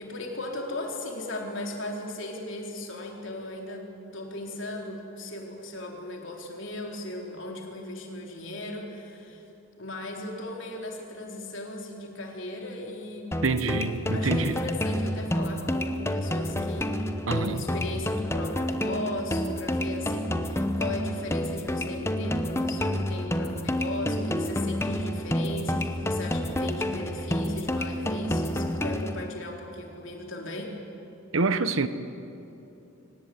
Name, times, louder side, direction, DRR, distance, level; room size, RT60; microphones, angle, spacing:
voice 1, 0.0-9.4 9.8-13.4 14.1-16.9 17.3-30.7, left 1 dB, 65° left, 0 dB, 4.1 m, -37 dB
sound 1, 13.3-29.3, left 1 dB, 15° left, 1.0 m, -29 dB
voice 2, 13.4-14.6 17.3-17.6 31.3-31.9, right 3 dB, 80° right, 12 dB, 1.2 m, -26 dB
24.5 x 18.5 x 9.5 m, 2.9 s
head